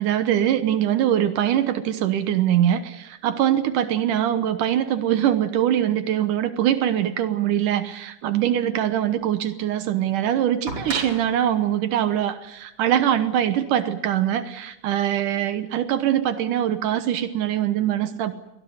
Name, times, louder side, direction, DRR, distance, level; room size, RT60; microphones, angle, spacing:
voice 1, 0.0-18.3, right 11 dB, 75° right, 10 dB, 2.6 m, -23 dB
sound 1, 9.2-9.3 10.7-13.5 14.7-14.8, right 2 dB, 50° right, 7.2 m, -37 dB
24.0 x 17.5 x 9.4 m, 0.84 s
omnidirectional pair, 3.7 m